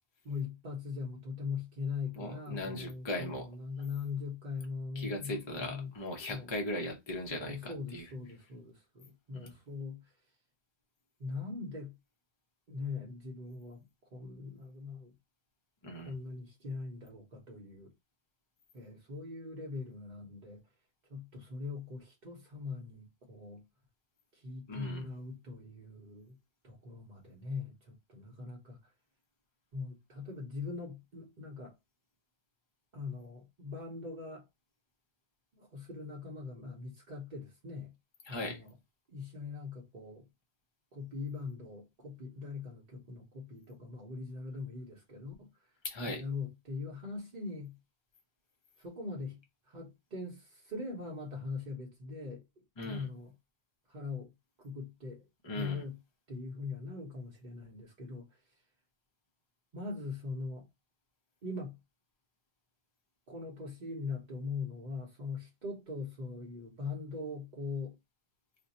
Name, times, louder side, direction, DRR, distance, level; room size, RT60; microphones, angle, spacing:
voice 1, 0.2-5.9 6.3-6.5 7.3-10.1 11.2-11.9 12.7-13.8 14.1-15.1 16.0-17.9 18.7-20.6 21.1-23.6 24.3-26.4 26.6-28.9 29.7-31.8 32.9-34.5 35.5-37.9 38.3-38.7 39.1-40.3 40.9-45.7 46.0-47.8 48.8-53.3 53.9-54.3 54.6-55.3 55.5-56.0 56.3-58.4 59.7-60.6 61.4-61.8 63.3-68.0, left 4 dB, 50° right, 0.9 m, -41 dB
voice 2, 2.1-3.5 4.9-8.0 9.3-9.5 15.8-16.1 24.7-25.0 38.3-38.6 45.8-46.2 52.8-53.1 55.4-55.8, left 1 dB, 30° left, 0.8 m, -38 dB
2.5 x 2.2 x 4.0 m
omnidirectional pair, 1.1 m